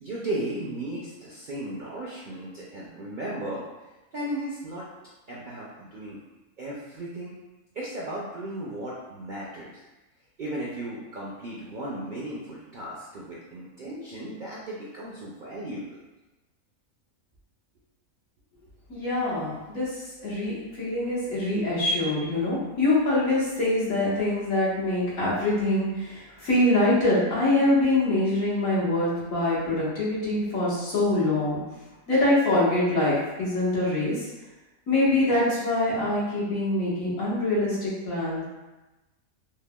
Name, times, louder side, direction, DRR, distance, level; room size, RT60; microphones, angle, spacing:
voice 1, 0.0-3.6 4.1-4.9 5.3-6.2 6.6-7.4 7.7-9.8 10.4-16.0, right 1 dB, 60° right, -6 dB, 0.5 m, -35 dB
voice 2, 18.9-31.6 32.1-34.3 34.9-38.4, left 2 dB, 80° left, -8 dB, 1.6 m, -24 dB
5.4 x 2.1 x 2.2 m, 1.1 s
omnidirectional pair, 1.4 m